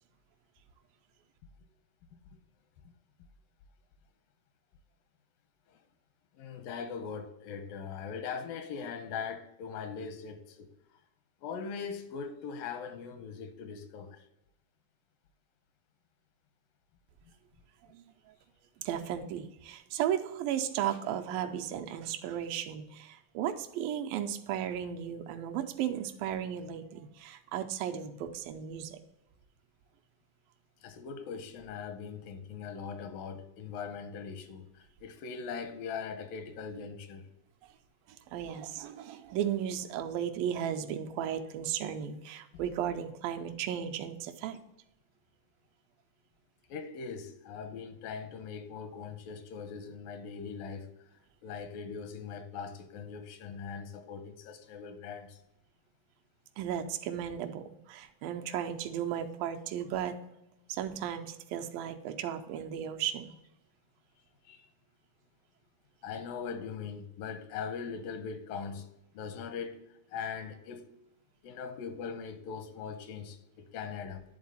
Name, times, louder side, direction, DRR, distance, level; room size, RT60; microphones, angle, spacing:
voice 1, 6.3-11.0 11.4-14.3 30.8-37.3 46.7-50.9 51.4-55.4 64.4-64.7 66.0-68.9 69.1-69.8 70.1-70.9 71.4-74.2, left 6 dB, 85° left, 2.4 m, -41 dB
voice 2, 18.8-29.0 38.3-44.6 56.6-60.2 60.7-63.3, right 9 dB, 85° right, 2.3 m, -35 dB
10.5 x 3.8 x 4.1 m
omnidirectional pair, 4.1 m